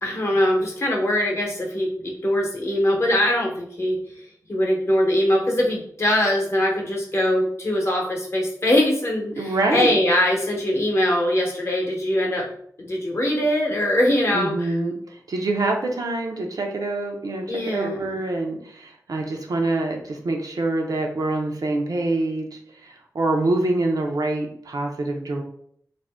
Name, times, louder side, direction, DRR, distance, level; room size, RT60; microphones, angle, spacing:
voice 1, 0.0-4.0 4.5-12.4 12.8-14.7 17.5-18.2, left 1 dB, 45° left, -1 dB, 0.8 m, -22 dB
voice 2, 9.4-10.0 14.3-25.4, right 2 dB, 70° right, 2 dB, 0.5 m, -25 dB
2.5 x 2.1 x 3.3 m, 0.64 s
wide cardioid pair, 70°, 7 cm